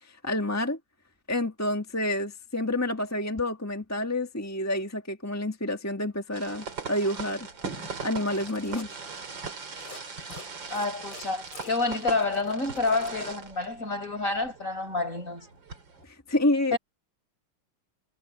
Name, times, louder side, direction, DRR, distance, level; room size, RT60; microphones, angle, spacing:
voice 1, 0.0-0.8 1.3-7.5 8.0-8.9 16.0-16.8, left 1 dB, 10° left, 1.5 m, -29 dB
sound 1, 6.3-16.0, right 4 dB, 60° right, 3.6 m, -40 dB
sound 2, 8.1-8.9 9.7-10.0 10.3-13.3, left 3 dB, 75° left, 5.8 m, -46 dB
voice 2, 10.7-15.5 16.7-16.8, left 3 dB, 35° left, 6.4 m, -28 dB
omnidirectional pair, 2.3 m